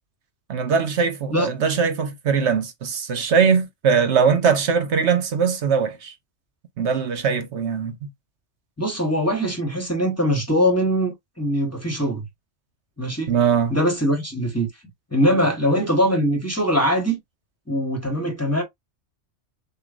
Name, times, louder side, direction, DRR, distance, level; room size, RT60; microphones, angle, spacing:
voice 1, 0.5-6.1 6.8-8.1 13.3-13.8, right 6 dB, 70° right, 1.2 m, -21 dB
voice 2, 8.8-12.2 13.0-13.4 13.7-14.7 15.1-17.2 17.7-18.6, equal, 15° left, 1.1 m, -22 dB
6.8 x 2.4 x 2.5 m
omnidirectional pair, 1.2 m